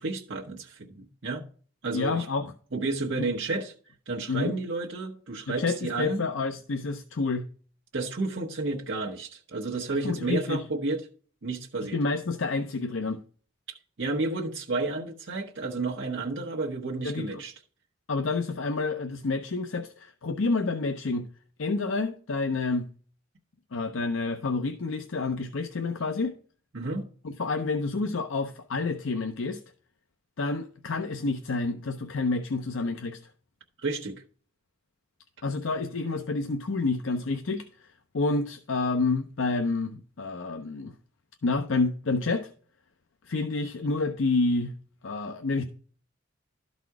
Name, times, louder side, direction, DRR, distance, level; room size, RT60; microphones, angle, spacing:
voice 1, 0.0-1.4 1.8-2.3 2.7-3.7 4.1-6.2 7.9-11.0 11.4-12.0 14.0-17.5 26.7-27.1 33.8-34.2, right 3 dB, 60° right, 1.0 m, -31 dB
voice 2, 1.9-2.5 3.2-3.3 4.3-4.5 5.5-7.5 9.9-10.6 11.9-13.2 17.0-17.4 18.1-21.3 21.6-22.9 23.7-26.3 27.2-29.6 30.4-33.2 35.4-37.9 38.1-40.9 41.4-42.5 43.3-44.7 45.0-45.6, left 3 dB, 70° left, 0.6 m, -29 dB
12.0 x 4.2 x 4.7 m
head